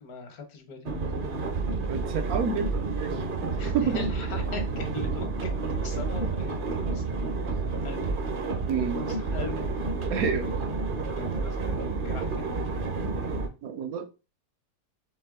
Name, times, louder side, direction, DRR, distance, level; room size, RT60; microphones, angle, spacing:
voice 1, 0.0-0.9 3.6-5.3 5.8-7.2 7.5-8.1 8.8-9.8 10.1-10.6 11.1-12.9, left 4 dB, 80° left, 1.5 m, -41 dB
sound 1, 0.8-13.5, right 3 dB, 45° right, 0.7 m, -30 dB
voice 2, 1.9-4.1 6.2-6.3 8.7-9.0 10.1-10.5 13.6-14.1, right 6 dB, 75° right, 1.2 m, -30 dB
4.5 x 3.1 x 3.6 m
omnidirectional pair, 1.6 m